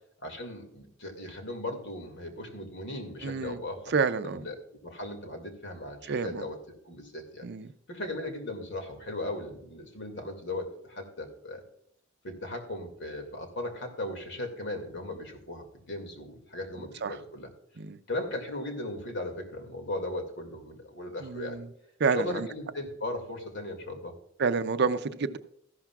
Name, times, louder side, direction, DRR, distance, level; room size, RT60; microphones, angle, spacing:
voice 1, 0.2-3.9 4.2-4.6 4.8-6.6 6.8-7.5 7.9-11.6 12.2-17.5 18.1-21.6 22.1-24.1, left 2 dB, 60° left, 2.3 m, -37 dB
voice 2, 3.2-3.6 3.9-4.5 6.0-6.5 7.4-7.7 16.8-17.2 17.8-18.0 21.2-21.7 22.0-22.5 24.4-25.4, right 5 dB, 55° right, 0.5 m, -29 dB
14.0 x 11.5 x 2.4 m
head